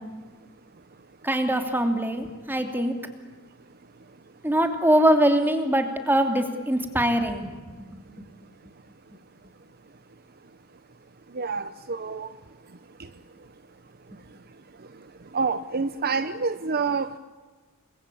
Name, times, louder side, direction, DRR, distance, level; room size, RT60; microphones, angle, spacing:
voice 1, 1.2-3.0 4.4-8.0, right 1 dB, 10° right, 6 dB, 2.8 m, -23 dB
voice 2, 11.3-12.3 15.3-17.1, right 4 dB, 45° right, 11 dB, 0.8 m, -27 dB
29.5 x 22.0 x 8.6 m, 1.4 s
head